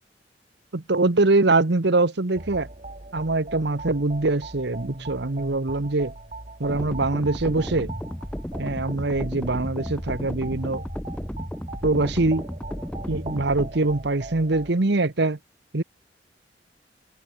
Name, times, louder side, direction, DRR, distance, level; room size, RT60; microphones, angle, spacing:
voice 1, 0.7-2.7 3.1-6.1 6.6-7.9 8.6-10.8 11.8-12.5 13.1-15.4 15.7-15.8, right 2 dB, 65° right, 1.1 m, -23 dB
sound 1, 2.3-14.7, right 2 dB, 40° right, 3.8 m, -40 dB
sound 2, 6.7-13.7, equal, 5° left, 0.8 m, -34 dB
open air
head